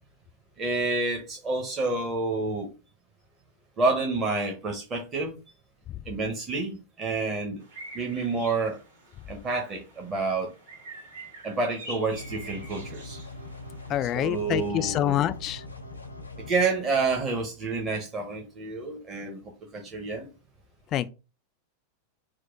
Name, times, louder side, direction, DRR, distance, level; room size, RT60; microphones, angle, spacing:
voice 1, 0.6-2.7 3.8-5.4 6.1-7.6 7.9-8.8 9.3-10.5 11.4-13.2 14.1-15.2 16.5-20.3, right 3 dB, 25° right, 0.8 m, -29 dB
sound 1, 7.6-14.1, right 1 dB, 60° right, 1.7 m, -46 dB
sound 2, 12.1-16.5, left 2 dB, 85° left, 0.6 m, -41 dB
voice 2, 13.9-15.6 20.9-21.1, left 12 dB, 35° left, 0.3 m, -26 dB
4.6 x 2.1 x 3.7 m
figure-of-eight pair, 90°, 0 cm